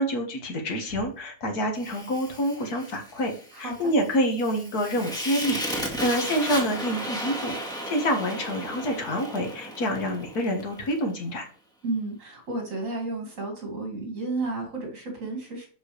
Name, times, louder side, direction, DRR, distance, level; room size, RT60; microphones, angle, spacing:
voice 1, 0.0-3.3 3.6-7.5 7.9-11.5, equal, 75° left, 3 dB, 2.1 m, -27 dB
Fire, 1.8-11.0, equal, 5° left, 1.6 m, -35 dB
voice 2, 3.5-3.9 11.8-15.7, right 2 dB, 55° right, 1 dB, 2.7 m, -32 dB
7.4 x 6.2 x 3.3 m, 0.41 s
omnidirectional pair, 1.7 m